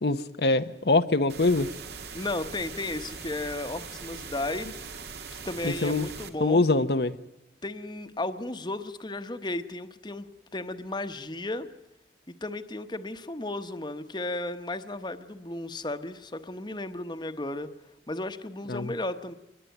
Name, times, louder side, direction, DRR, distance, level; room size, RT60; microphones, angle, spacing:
voice 1, 0.0-1.7 5.6-6.1 6.4-7.1 18.7-18.9, left 2 dB, 65° left, 8 dB, 0.9 m, -24 dB
sound 1, 1.3-6.3, right 5 dB, 65° right, 2.2 m, -41 dB
voice 2, 2.1-5.0 5.4-6.6 7.6-10.3 10.5-11.7 12.3-17.7 18.1-19.3, left 2 dB, 25° left, 9 dB, 1.1 m, -34 dB
26.5 x 21.0 x 9.2 m, 0.90 s
head